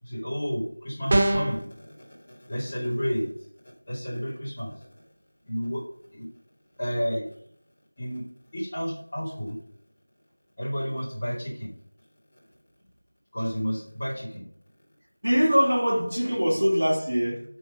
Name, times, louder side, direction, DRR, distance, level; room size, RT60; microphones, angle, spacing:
voice 1, 0.0-5.0 5.5-5.8 6.1-6.3 6.8-7.3 8.0-8.2 8.5-9.5 10.6-11.7 13.3-14.5, equal, 20° left, 2.6 m, -31 dB
sound 1, 1.1-1.6, right 1 dB, 20° right, 0.5 m, -22 dB
voice 2, 15.2-17.4, equal, 45° right, 2.8 m, -23 dB
6.3 x 6.2 x 5.2 m
figure-of-eight pair, 175°, 0 cm